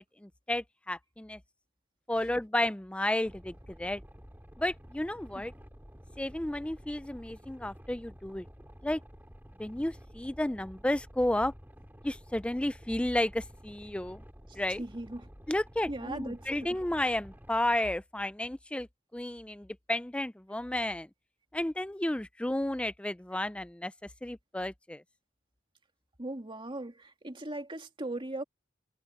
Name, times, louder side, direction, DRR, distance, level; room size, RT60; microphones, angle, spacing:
voice 1, 0.0-1.4 2.1-4.0 4.6-5.5 6.2-8.5 8.8-9.0 9.6-11.5 12.0-14.2 14.5-14.8 15.5-18.9 19.1-21.1 21.5-23.9 24.2-25.0, left 1 dB, 5° left, 0.4 m, -32 dB
Boat Water vehicle, 3.2-17.5, equal, 10° right, 3.1 m, -51 dB
voice 2, 14.8-15.3 15.9-16.8 26.2-28.4, right 2 dB, 25° right, 2.4 m, -39 dB
head